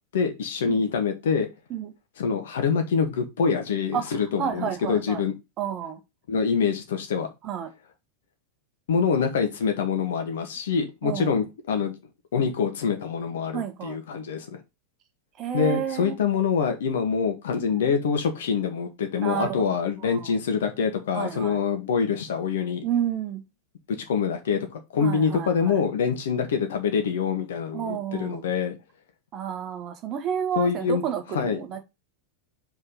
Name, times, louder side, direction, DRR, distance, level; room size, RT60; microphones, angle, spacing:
voice 1, 0.1-1.5 2.2-5.3 6.3-7.3 8.9-11.9 12.3-14.6 15.5-22.8 24.1-24.6 24.9-28.8 30.5-31.0 31.3-31.6, left 6 dB, 60° left, 1.8 m, -25 dB
voice 2, 3.9-5.2 5.6-6.0 7.4-7.7 11.0-11.4 13.5-14.0 15.4-16.2 17.6-17.9 19.2-20.3 21.1-21.6 22.8-23.4 25.0-25.8 27.7-28.4 29.3-31.8, right 9 dB, 35° right, 1.7 m, -31 dB
5.6 x 4.6 x 5.6 m
figure-of-eight pair, 90°, 0 cm